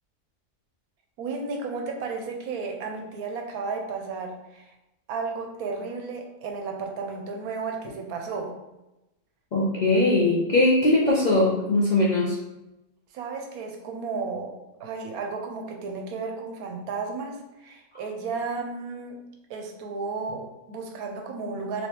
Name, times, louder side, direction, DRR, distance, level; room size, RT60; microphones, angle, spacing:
voice 1, 1.2-4.7 5.1-8.6 13.1-19.2 19.5-21.9, right 4 dB, 85° right, 2 dB, 1.1 m, -33 dB
voice 2, 9.5-12.4, left 2 dB, 80° left, -5 dB, 0.4 m, -21 dB
3.2 x 2.9 x 2.9 m, 0.95 s
omnidirectional pair, 1.5 m